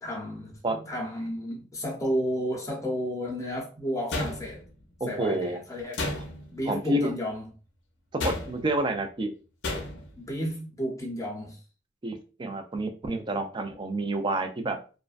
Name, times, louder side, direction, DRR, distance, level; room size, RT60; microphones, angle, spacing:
voice 1, 0.0-4.6 5.1-6.0 6.5-7.4 10.1-11.6, equal, 15° left, 0.7 m, -32 dB
sound 1, 4.1-4.8 5.9-6.6 8.2-8.8 9.6-10.2, left 2 dB, 65° left, 0.5 m, -33 dB
voice 2, 5.0-5.6 6.7-7.1 8.2-9.3 12.0-14.8, right 1 dB, 25° right, 0.3 m, -29 dB
2.4 x 2.1 x 2.4 m
head